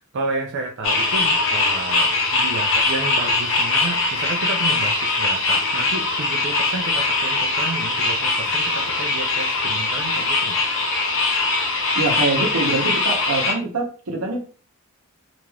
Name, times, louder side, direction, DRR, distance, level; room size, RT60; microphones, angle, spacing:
voice 1, 0.1-10.6, right 3 dB, 55° right, 2 dB, 0.4 m, -31 dB
sound 1, 0.8-13.5, left 3 dB, 60° left, 0.6 m, -21 dB
voice 2, 11.9-14.4, right 3 dB, 85° right, 2 dB, 0.8 m, -24 dB
3.2 x 2.4 x 2.3 m, 0.39 s
head